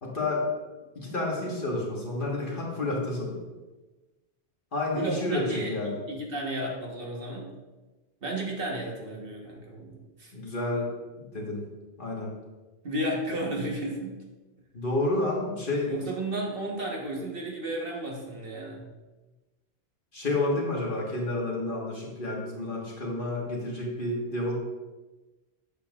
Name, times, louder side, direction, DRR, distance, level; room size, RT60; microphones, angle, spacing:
voice 1, 0.0-0.4 0.9-3.4 4.7-6.0 10.3-10.9 11.3-11.6 12.0-12.3 14.7-15.9 20.1-24.6, left 2 dB, 50° left, -3 dB, 1.6 m, -30 dB
voice 2, 4.9-7.5 8.2-10.3 12.8-14.2 15.9-18.9, right 1 dB, 55° right, -2 dB, 1.4 m, -33 dB
8.3 x 7.0 x 2.4 m, 1.2 s
omnidirectional pair, 1.1 m